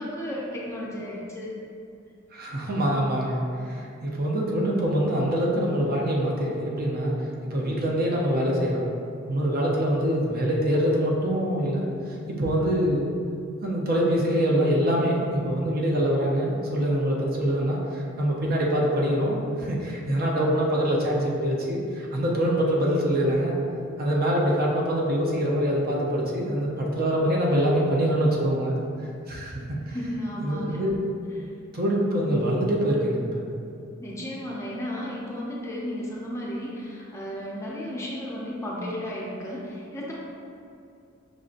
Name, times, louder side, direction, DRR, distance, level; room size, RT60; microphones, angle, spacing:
voice 1, 0.0-1.5 29.9-30.8 34.0-40.1, equal, 15° left, -5 dB, 0.5 m, -33 dB
voice 2, 2.3-7.1 7.5-8.9 9.3-11.9 12.3-13.1 13.6-23.6 24.0-29.5 29.9-30.0 30.4-31.0 31.7-33.4, equal, 45° right, -3 dB, 0.6 m, -24 dB
6.2 x 2.6 x 2.5 m, 2.5 s
head